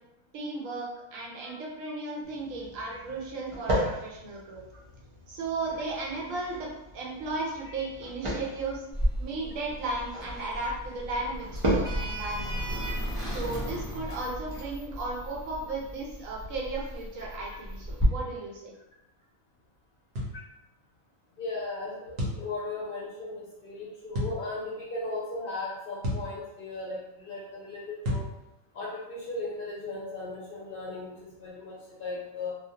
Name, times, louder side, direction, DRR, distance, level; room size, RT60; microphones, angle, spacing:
voice 1, 0.3-4.6 5.3-8.8 9.2-18.7, right 2 dB, 85° right, -3 dB, 1.1 m, -35 dB
sound 1, 2.2-14.6, right 1 dB, 40° right, 0.4 m, -37 dB
Sliding door, 8.9-18.0, equal, 5° left, 0.9 m, -35 dB
sound 2, 20.1-20.4 22.2-22.4 24.1-24.4 26.0-26.3 28.0-28.3, left 1 dB, 60° right, 0.8 m, -30 dB
voice 2, 21.4-28.2 28.7-32.5, left 2 dB, 55° left, -6 dB, 0.7 m, -37 dB
2.4 x 2.0 x 2.7 m, 0.89 s
omnidirectional pair, 1.3 m